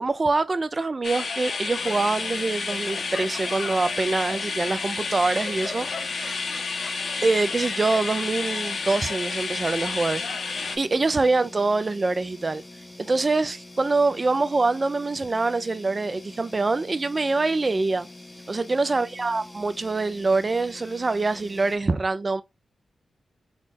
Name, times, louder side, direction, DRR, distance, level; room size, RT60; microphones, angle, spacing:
voice 1, 0.0-5.9 6.1-6.4 7.2-10.2 10.8-12.6 13.0-18.1 18.5-22.4, right 3 dB, 40° right, 0.5 m, -24 dB
sound 1, 1.0-10.8, left 4 dB, 70° left, 0.6 m, -30 dB
sound 2, 1.8-21.8, left 2 dB, 20° left, 0.6 m, -45 dB
4.2 x 2.9 x 2.4 m
cardioid pair, 55°, 0 cm